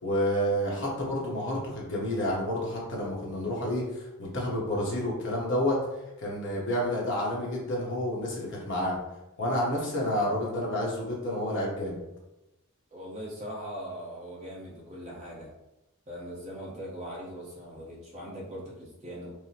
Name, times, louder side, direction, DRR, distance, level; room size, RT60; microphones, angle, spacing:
voice 1, 0.0-5.8 6.2-9.0 9.4-12.0, left 1 dB, 60° left, -4 dB, 1.1 m, -29 dB
voice 2, 12.9-15.5 16.1-19.3, equal, 30° right, -5 dB, 1.1 m, -40 dB
4.8 x 2.2 x 2.9 m, 0.96 s
head